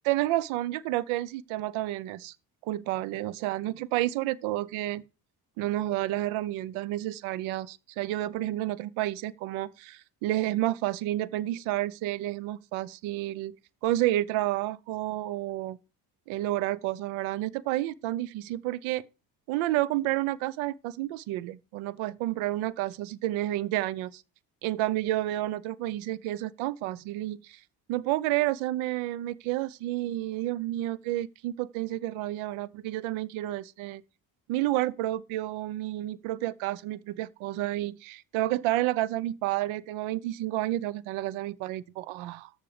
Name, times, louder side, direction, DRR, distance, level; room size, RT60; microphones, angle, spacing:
voice 1, 0.0-2.3 2.6-5.0 5.6-13.6 13.8-15.8 16.3-19.0 19.5-24.2 24.6-27.6 27.9-34.0 34.5-42.5, right 15 dB, 85° right, 0.9 m, -30 dB
13.5 x 6.3 x 5.0 m
supercardioid pair, 60°, 47 cm